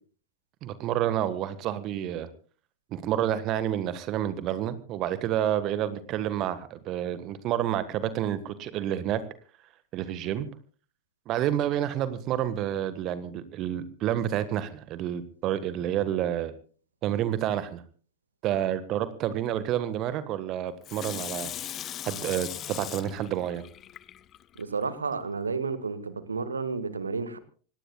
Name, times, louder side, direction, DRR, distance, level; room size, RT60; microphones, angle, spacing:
voice 1, 0.6-2.3 2.9-9.2 9.9-10.5 11.3-16.5 17.0-17.8 18.4-21.5 22.0-23.6, right 11 dB, 35° right, 14 dB, 1.4 m, -29 dB
Water tap faucet / Sink (filling or washing), 20.8-24.6 25.1-25.2, left 11 dB, 30° left, 0.8 m, -39 dB
voice 2, 24.6-27.4, right 4 dB, 75° right, 13 dB, 1.6 m, -31 dB
26.0 x 18.5 x 2.3 m, 0.41 s
figure-of-eight pair, 90°, 0 cm